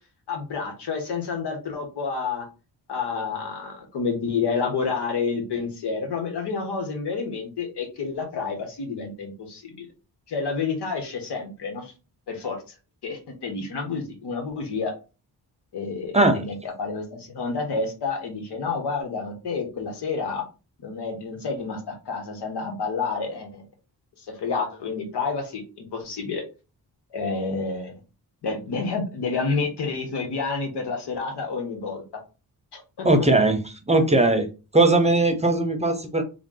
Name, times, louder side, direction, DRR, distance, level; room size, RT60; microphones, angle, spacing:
voice 1, 0.3-2.4 2.9-9.9 10.3-11.9 12.3-12.7 13.0-14.9 15.7-20.4 20.8-23.6 24.2-26.4 27.1-27.9 28.4-32.0 32.7-33.1 33.4-33.5, left 4 dB, 85° left, 3 dB, 1.2 m, -29 dB
voice 2, 33.0-34.5 34.7-36.2, right 2 dB, 15° right, 6 dB, 0.7 m, -19 dB
3.7 x 2.3 x 3.7 m, 0.32 s
cardioid pair, 75°, 39 cm